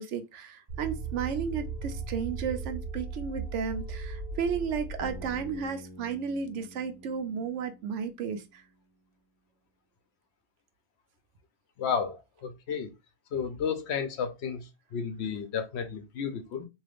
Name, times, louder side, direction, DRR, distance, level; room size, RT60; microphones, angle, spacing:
voice 1, 0.0-8.6, right 6 dB, 80° right, 0.9 m, -33 dB
sound 1, 0.7-5.7, right 4 dB, 45° right, 1.3 m, -37 dB
Bass guitar, 5.0-9.0, left 1 dB, 25° left, 0.6 m, -49 dB
voice 2, 11.8-12.9 13.3-16.7, left 6 dB, 65° left, 0.9 m, -32 dB
3.4 x 2.7 x 2.4 m
omnidirectional pair, 1.2 m